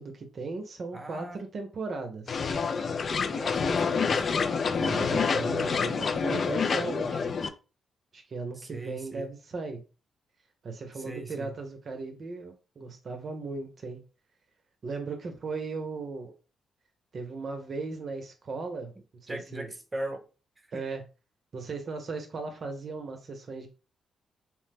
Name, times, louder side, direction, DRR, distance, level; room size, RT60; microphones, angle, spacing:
voice 1, 0.0-2.5 4.7-7.3 8.1-9.8 10.6-14.0 14.8-16.3 17.1-18.9 19.2-19.7 20.7-21.0 21.5-23.7, right 4 dB, 55° right, 0.6 m, -37 dB
voice 2, 0.9-1.4 3.3-4.2 8.6-9.3 10.9-11.5 19.3-20.2 20.7-20.8, right 2 dB, 20° right, 0.7 m, -39 dB
sound 1, 2.3-7.5, left 5 dB, 55° left, 0.3 m, -27 dB
2.9 x 2.1 x 3.3 m
cardioid pair, 70°, 0 cm